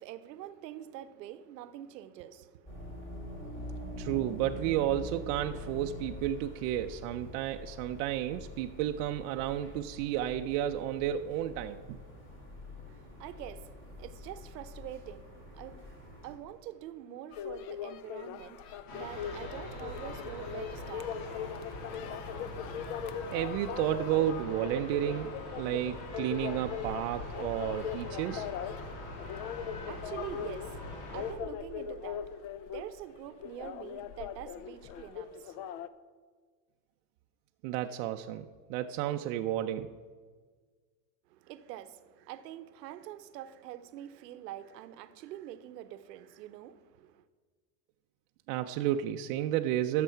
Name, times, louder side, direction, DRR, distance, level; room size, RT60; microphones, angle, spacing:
voice 1, 0.0-3.1 12.9-21.6 29.3-35.8 41.3-47.2, right 12 dB, 85° right, 0.9 m, -46 dB
sound 1, 2.7-16.4, left 1 dB, 25° left, 2.7 m, -45 dB
voice 2, 4.0-12.0 23.3-28.5 37.6-39.9 48.5-50.0, right 12 dB, 55° right, 0.6 m, -32 dB
sound 2, 17.3-35.9, left 8 dB, 45° left, 0.6 m, -40 dB
sound 3, 18.9-31.3, left 2 dB, 65° left, 2.9 m, -43 dB
12.5 x 6.8 x 5.6 m
supercardioid pair, 130°, 48 cm